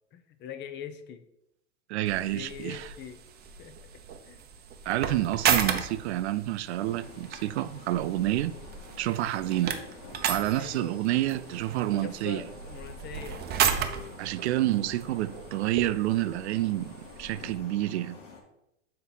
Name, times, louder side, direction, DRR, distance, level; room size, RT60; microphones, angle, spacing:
voice 1, 0.1-1.2 2.3-3.2 3.6-3.8 4.2-4.4 10.5-11.0 12.0-13.4, left 7 dB, 30° left, 0.6 m, -42 dB
voice 2, 1.9-2.9 4.9-8.6 9.0-9.8 10.3-12.4 14.2-18.2, right 15 dB, 65° right, 0.5 m, -29 dB
sound 1, 2.0-17.6, right 8 dB, 25° right, 0.7 m, -34 dB
sound 2, 6.7-18.4, left 4 dB, 85° left, 1.9 m, -49 dB
6.5 x 4.2 x 3.9 m
hypercardioid pair, 110°, 36 cm